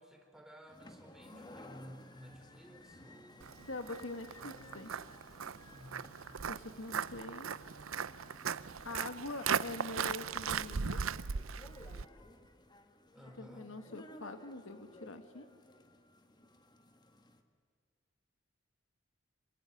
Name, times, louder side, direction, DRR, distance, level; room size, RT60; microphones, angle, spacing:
voice 1, 0.0-3.5 4.3-5.0 5.7-6.3 13.1-13.8, equal, 5° right, 3 dB, 3.7 m, -55 dB
sound 1, 0.7-17.4, left 1 dB, 20° left, 1.7 m, -57 dB
Walk footsteps, 3.4-12.1, right 7 dB, 85° right, 0.7 m, -38 dB
voice 2, 3.7-4.9 6.5-7.6 8.8-11.0 13.4-15.5, left 2 dB, 75° left, 9 dB, 1.6 m, -44 dB
26.0 x 23.5 x 9.7 m, 2.1 s
head